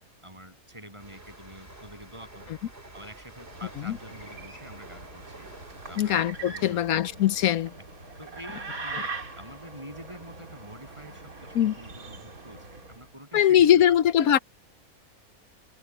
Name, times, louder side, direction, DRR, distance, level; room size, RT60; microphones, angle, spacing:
voice 1, 0.2-2.6 2.9-5.5 5.9-7.3 7.7-7.8 8.2-14.3, equal, 20° right, 7.9 m, -47 dB
sound 1, 1.0-8.5 8.8-9.1, right 1 dB, 40° right, 4.7 m, -49 dB
sound 2, 3.3-13.1, right 3 dB, 70° right, 3.7 m, -42 dB
voice 2, 6.0-7.7 8.9-9.0 11.5-11.8 13.3-14.4, left 10 dB, 75° left, 1.2 m, -21 dB
omnidirectional pair, 1.6 m